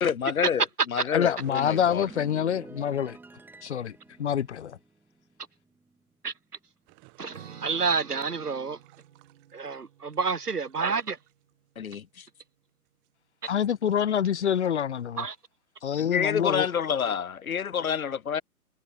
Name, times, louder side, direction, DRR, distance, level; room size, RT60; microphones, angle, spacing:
voice 1, 0.0-2.1 11.8-12.3 16.0-18.4, left 7 dB, 65° left, 0.9 m, -28 dB
voice 2, 1.1-3.2 3.6-4.7 13.5-15.3 15.8-16.7, left 9 dB, 50° left, 1.7 m, -26 dB
sound 1, 1.3-2.9 6.8-7.3 8.4-9.8 10.1-11.5 12.8-13.1 13.7-14.6 15.0-15.1 15.4-15.5 16.1-16.3, right 34 dB, 25° right, 7.5 m, -57 dB
sound 2, 1.5-6.1 6.4-6.7, right 3 dB, 5° right, 5.6 m, -50 dB
voice 3, 7.2-8.8 9.5-11.2 15.2-15.4, right 5 dB, 85° right, 1.1 m, -29 dB
Acoustic guitar / Strum, 7.3-12.1, right 11 dB, 45° right, 5.5 m, -52 dB
figure-of-eight pair, 130°, 45 cm